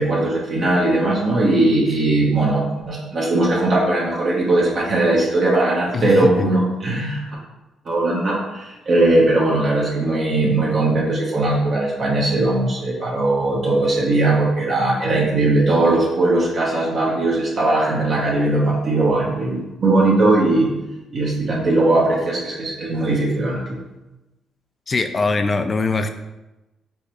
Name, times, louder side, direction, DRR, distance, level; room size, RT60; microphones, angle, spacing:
voice 1, 0.0-7.2 7.9-20.7 21.1-23.6, right 2 dB, 55° right, -4 dB, 0.8 m, -19 dB
voice 2, 5.9-6.5 24.9-26.1, left 3 dB, 35° left, 8 dB, 0.3 m, -21 dB
4.6 x 2.2 x 2.9 m, 1.0 s
cardioid pair, 80°, 0 cm